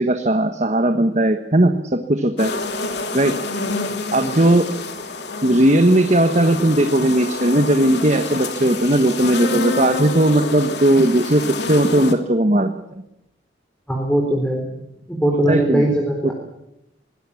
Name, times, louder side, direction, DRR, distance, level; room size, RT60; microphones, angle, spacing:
voice 1, 0.0-2.5 3.1-3.3 4.1-4.7 5.4-13.0 15.5-15.9, right 1 dB, 40° right, 7 dB, 1.3 m, -17 dB
sound 1, 2.4-12.1, left 3 dB, 70° left, 2.7 m, -28 dB
voice 2, 13.9-14.7 15.1-16.3, right 1 dB, 5° left, 1 dB, 4.2 m, -20 dB
22.5 x 19.5 x 7.2 m, 0.87 s
head